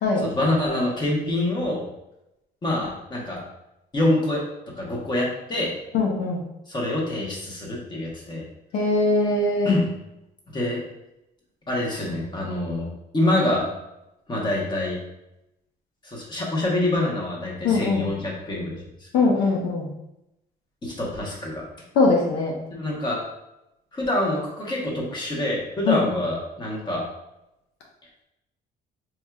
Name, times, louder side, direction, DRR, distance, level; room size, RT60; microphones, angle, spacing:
voice 1, 0.2-1.8 2.6-3.4 3.9-4.4 4.8-5.7 6.7-8.4 9.6-9.9 10.5-10.8 11.7-12.8 13.1-13.7 14.3-15.0 16.0-19.2 20.8-21.6 22.7-23.2 23.9-27.0, left 1 dB, 25° left, -3 dB, 1.1 m, -26 dB
voice 2, 5.9-6.4 8.7-9.8 17.6-18.0 19.1-19.9 21.9-22.5 25.9-26.1, left 3 dB, 80° left, -1 dB, 0.7 m, -21 dB
4.5 x 2.7 x 2.3 m, 0.88 s
cardioid pair, 110°, 17 cm